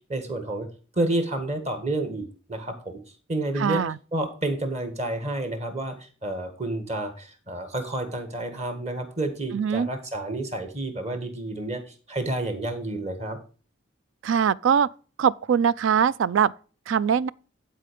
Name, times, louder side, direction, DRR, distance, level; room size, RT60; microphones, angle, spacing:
voice 1, 0.1-0.7 1.0-3.0 3.3-3.8 4.1-13.4, right 1 dB, 35° right, 1.7 m, -30 dB
voice 2, 3.6-4.0 9.5-9.9 14.2-14.9 15.2-16.5 16.9-17.3, right 7 dB, 75° right, 0.4 m, -22 dB
11.0 x 4.6 x 5.1 m
head